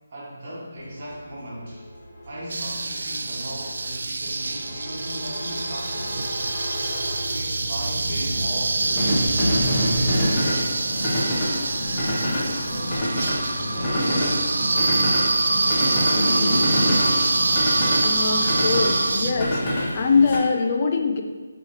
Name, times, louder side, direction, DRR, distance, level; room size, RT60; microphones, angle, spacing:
voice 1, 0.1-1.8 2.3-6.2 7.2-10.9 11.1-11.6 12.3-13.0, equal, 45° right, -5 dB, 1.4 m, -38 dB
sound 1, 0.9-20.4, equal, 20° left, 1.1 m, -27 dB
sound 2, 2.5-19.3, right 3 dB, 60° right, 0.3 m, -26 dB
sound 3, 10.7-19.2, right 1 dB, 80° right, 1.2 m, -31 dB
voice 2, 18.0-21.2, left 4 dB, 35° left, 4 dB, 0.4 m, -23 dB
5.5 x 3.1 x 3.1 m, 1.3 s
figure-of-eight pair, 155°, 0 cm